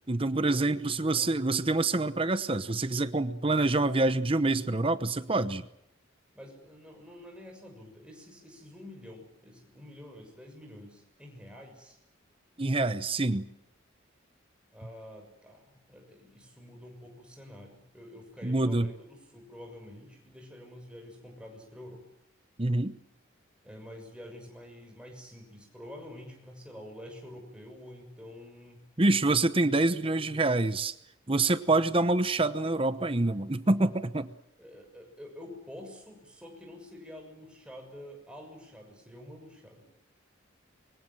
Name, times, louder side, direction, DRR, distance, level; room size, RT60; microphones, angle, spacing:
voice 1, 0.1-5.7 12.6-13.5 18.4-18.9 22.6-23.0 29.0-30.9 31.3-34.3, right 2 dB, 25° right, 13 dB, 0.9 m, -26 dB
voice 2, 6.3-12.0 14.7-22.0 23.6-28.8 34.6-39.8, left 1 dB, 5° right, 2 dB, 6.6 m, -48 dB
26.5 x 24.0 x 7.6 m, 0.77 s
head